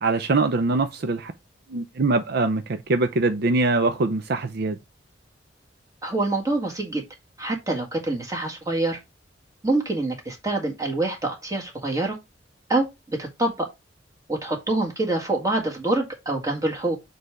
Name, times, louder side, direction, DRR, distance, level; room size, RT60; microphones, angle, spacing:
voice 1, 0.0-1.3 1.7-4.8, right 3 dB, 60° right, 0.6 m, -23 dB
voice 2, 6.0-7.0 7.4-9.0 9.6-12.2 12.7-13.7 14.3-17.0, right 2 dB, 20° right, 1.8 m, -26 dB
6.7 x 3.3 x 4.8 m
head